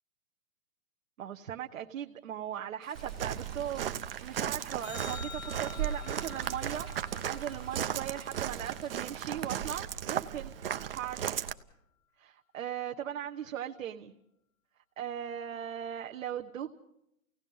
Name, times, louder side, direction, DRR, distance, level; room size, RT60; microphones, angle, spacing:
voice 1, 1.2-3.9 4.2-10.5 10.9-11.4 12.2-14.2 15.0-16.7, right 10 dB, 60° right, 3 dB, 1.1 m, -38 dB
Stream / Trickle dribble, 2.8-9.6, right 1 dB, ahead, 0.9 m, -56 dB
Walk footsteps, 2.9-11.5, right 9 dB, 40° right, 0.7 m, -36 dB
sound 1, 4.8-9.3 15.8-15.9, left 7 dB, 65° left, 1.0 m, -49 dB
29.0 x 17.5 x 5.5 m, 0.79 s
hypercardioid pair, 170°, 43 cm